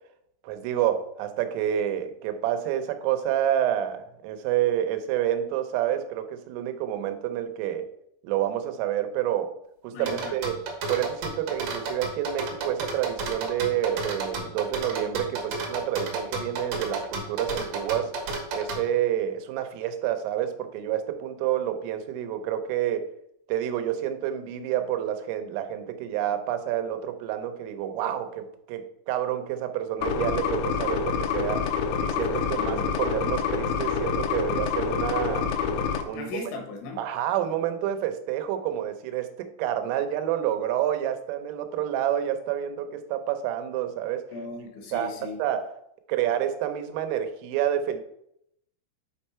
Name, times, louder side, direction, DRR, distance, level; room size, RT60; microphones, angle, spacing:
voice 1, 0.4-7.9 8.2-9.5 9.8-10.6 10.9-18.1 18.5-23.1 23.5-31.7 32.0-35.5 36.0-36.5 37.0-44.2 44.9-45.1 45.4-45.8 46.1-48.0, right 11 dB, 90° right, 8 dB, 3.4 m, -28 dB
voice 2, 9.9-10.4 32.2-32.9 36.1-37.0 44.3-45.4, left 3 dB, 75° left, 2 dB, 3.5 m, -38 dB
sound 1, 10.1-18.8, right 3 dB, 75° right, 1.9 m, -32 dB
sound 2, 30.0-36.0, left 6 dB, 90° left, 3.2 m, -27 dB
8.2 x 4.5 x 4.3 m, 0.75 s
omnidirectional pair, 5.7 m